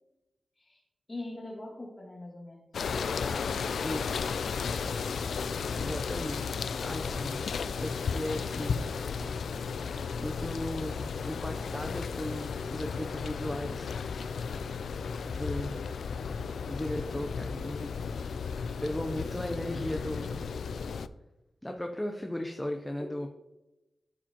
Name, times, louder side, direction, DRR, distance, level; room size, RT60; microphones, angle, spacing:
voice 1, 1.1-2.8, left 2 dB, 25° left, -4 dB, 2.7 m, -42 dB
sound 1, 2.7-21.1, left 5 dB, 90° left, 0.3 m, -34 dB
voice 2, 3.8-4.2 5.8-6.4 6.8-8.9 10.2-13.9 15.3-16.0 16.7-17.9 18.8-20.5 21.6-23.3, left 1 dB, 10° left, 2 dB, 0.6 m, -36 dB
13.5 x 4.9 x 2.9 m, 1.0 s
wide cardioid pair, 135°, 0 cm